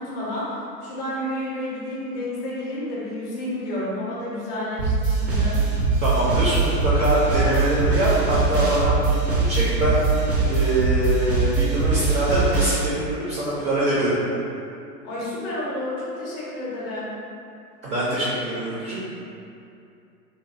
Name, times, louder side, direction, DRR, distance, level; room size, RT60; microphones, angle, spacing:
voice 1, 0.0-5.6 15.0-17.1, left 1 dB, 30° left, -7 dB, 0.6 m, -30 dB
sound 1, 4.8-12.8, right 4 dB, 85° right, 0.8 m, -22 dB
voice 2, 6.0-14.1 17.8-19.0, right 1 dB, 25° right, -8 dB, 0.5 m, -24 dB
3.1 x 2.2 x 2.5 m, 2.6 s
hypercardioid pair, 110°, 49 cm